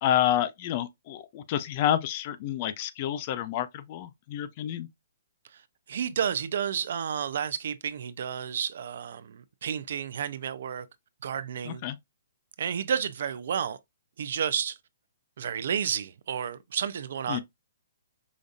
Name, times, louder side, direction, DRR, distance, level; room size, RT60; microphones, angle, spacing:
voice 1, 0.0-4.9 11.6-12.0 17.3-17.4, left 11 dB, 35° left, 0.4 m, -29 dB
voice 2, 5.9-10.9 11.2-11.8 12.6-13.8 14.2-14.8 15.4-17.4, right 8 dB, 60° right, 0.4 m, -31 dB
5.0 x 2.6 x 2.4 m
hypercardioid pair, 155°, 0 cm